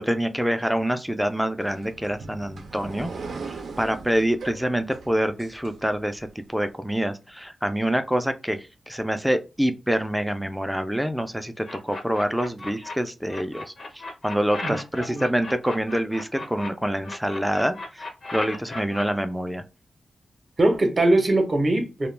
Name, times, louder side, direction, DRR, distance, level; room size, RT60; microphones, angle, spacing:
voice 1, 0.0-3.1 3.8-13.6 13.9-19.6, equal, 5° right, 0.3 m, -26 dB
sound 1, 1.6-6.3, right 4 dB, 90° right, 0.4 m, -39 dB
sound 2, 11.6-12.9 13.3-16.7 17.0-19.0, left 2 dB, 65° left, 0.6 m, -36 dB
voice 2, 14.6-15.2 20.6-22.1, right 2 dB, 40° right, 0.6 m, -22 dB
2.2 x 2.1 x 3.1 m
wide cardioid pair, 100°, 0 cm